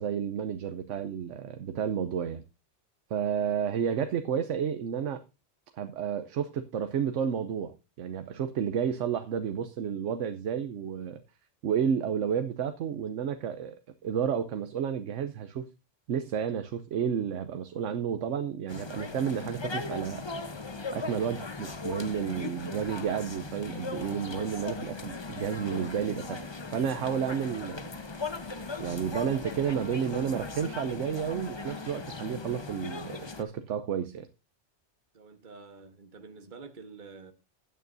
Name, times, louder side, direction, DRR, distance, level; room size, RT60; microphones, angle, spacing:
voice 1, 0.0-2.4 3.1-5.2 5.8-11.2 11.6-15.7 16.1-20.3 20.9-26.4 26.7-27.8 28.8-34.3, right 8 dB, 85° right, 1.1 m, -31 dB
sound 1, 18.7-33.4, left 3 dB, 25° left, 0.8 m, -38 dB
voice 2, 35.1-37.3, right 4 dB, 45° right, 1.4 m, -48 dB
15.5 x 8.9 x 2.6 m
omnidirectional pair, 1.2 m